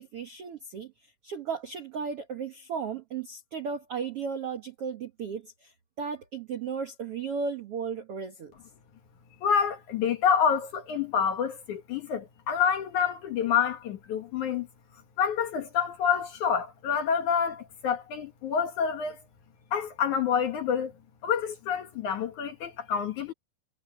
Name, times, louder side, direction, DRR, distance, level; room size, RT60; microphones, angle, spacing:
voice 1, 0.0-8.5, right 6 dB, 85° right, 1.3 m, -35 dB
voice 2, 9.4-14.7 15.2-19.2 19.7-20.9 21.2-23.3, left 7 dB, 60° left, 2.3 m, -27 dB
omnidirectional pair, 4.9 m